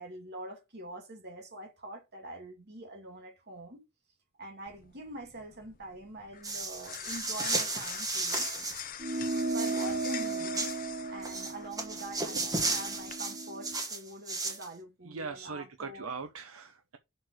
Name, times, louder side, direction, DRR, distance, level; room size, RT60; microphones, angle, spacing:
voice 1, 0.0-3.8 4.4-8.5 9.5-10.7 11.1-16.1, right 1 dB, 50° right, 2.5 m, -45 dB
sound 1, 4.7-13.1, left 9 dB, 40° left, 0.7 m, -44 dB
sound 2, 6.4-8.8 9.1-10.8 11.2-14.7, right 3 dB, 15° right, 1.6 m, -34 dB
sound 3, 9.0-13.8, right 3 dB, 35° right, 0.5 m, -36 dB
voice 2, 15.0-17.0, right 4 dB, 70° right, 0.8 m, -40 dB
6.6 x 4.2 x 6.3 m
head